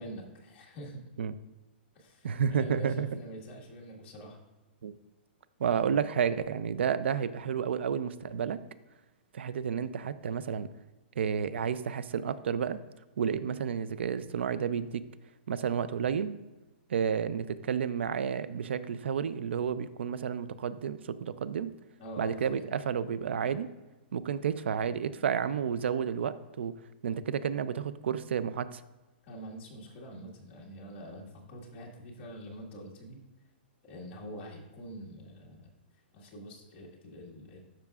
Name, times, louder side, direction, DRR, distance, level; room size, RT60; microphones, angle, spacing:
voice 1, 0.0-1.0 1.9-4.4 22.0-22.7 29.2-33.2 33.8-35.7 36.1-37.6, equal, 30° left, -3 dB, 1.7 m, -45 dB
voice 2, 2.2-3.1 4.8-4.9 5.6-8.6 9.3-10.7 11.2-12.8 13.2-15.0 15.5-16.3 16.9-21.7 22.2-23.7 24.1-26.7 27.0-28.8, right 7 dB, 85° right, 15 dB, 0.4 m, -31 dB
12.0 x 5.8 x 2.4 m, 1.1 s
hypercardioid pair, 165°, 6 cm